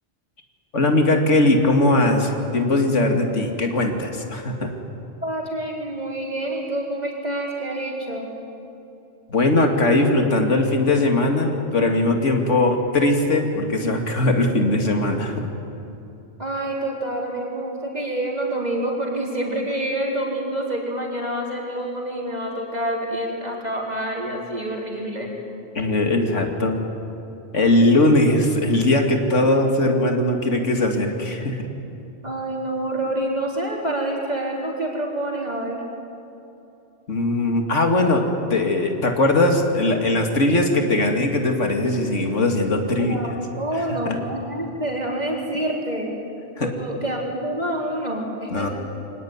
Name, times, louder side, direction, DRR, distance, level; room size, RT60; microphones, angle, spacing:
voice 1, 0.7-4.7 9.3-15.5 25.7-26.8 27.5-31.7 37.1-38.2 38.5-43.2 44.1-44.2 46.6-46.7 48.5-48.7, left 2 dB, 80° left, 4 dB, 2.6 m, -20 dB
voice 2, 5.2-8.3 16.4-25.3 32.2-35.8 43.0-46.1 46.6-48.7, right 1 dB, 35° right, -1 dB, 4.1 m, -27 dB
24.0 x 18.5 x 9.5 m, 2.8 s
omnidirectional pair, 1.2 m